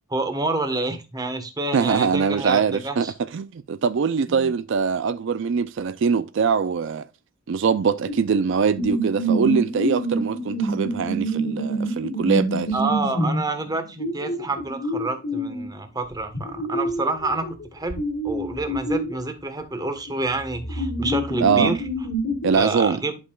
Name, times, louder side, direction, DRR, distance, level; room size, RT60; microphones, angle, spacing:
voice 1, 0.1-3.1 4.3-4.5 12.7-21.8 22.5-23.2, right 2 dB, 20° right, 1.2 m, -28 dB
voice 2, 1.7-3.1 3.3-7.1 7.5-12.8 21.4-21.7 22.4-23.0, right 6 dB, 65° right, 0.4 m, -22 dB
sound 1, 8.1-8.2 8.8-15.7 16.3-19.1 20.1-20.2 20.5-22.5, right 1 dB, 75° left, 1.8 m, -26 dB
11.5 x 5.6 x 2.3 m
head